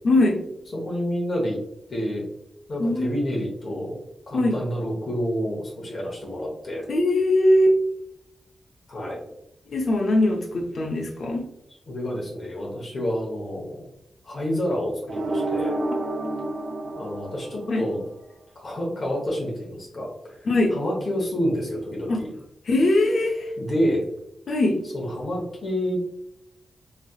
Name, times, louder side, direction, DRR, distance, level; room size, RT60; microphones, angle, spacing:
voice 1, 0.0-0.4 2.8-3.1 4.3-4.6 6.9-7.8 9.7-11.4 17.7-17.8 20.5-20.8 22.1-22.2 22.7-23.5 24.5-24.8, left 1 dB, 60° left, 1 dB, 0.5 m, -21 dB
voice 2, 0.7-1.6 1.9-2.2 2.7-4.0 4.3-6.8 8.9-9.2 11.9-13.9 14.2-15.8 17.0-18.0 18.5-22.3 23.6-24.0 24.9-26.1, equal, 45° left, -3 dB, 1.0 m, -28 dB
sound 1, 15.1-18.1, right 2 dB, 45° right, 0.4 m, -29 dB
3.2 x 2.7 x 2.3 m, 0.80 s
wide cardioid pair, 100°, 0 cm